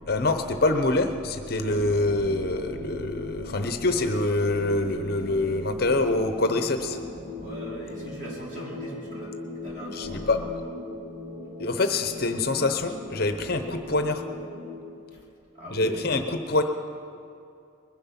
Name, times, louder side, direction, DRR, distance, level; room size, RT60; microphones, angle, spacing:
voice 1, 0.1-7.0 9.9-10.4 11.6-14.2 15.7-16.6, left 2 dB, 50° left, 7 dB, 0.8 m, -25 dB
sound 1, 1.6-14.7, left 2 dB, 70° right, 4.6 m, -39 dB
sound 2, 1.8-4.6 6.8-9.5 11.8-12.4, equal, 20° left, 2.6 m, -50 dB
voice 2, 7.4-9.4 9.6-10.5 15.1-15.2 15.5-16.1, right 1 dB, 40° right, -6 dB, 4.2 m, -40 dB
21.0 x 11.0 x 5.8 m, 2.5 s
head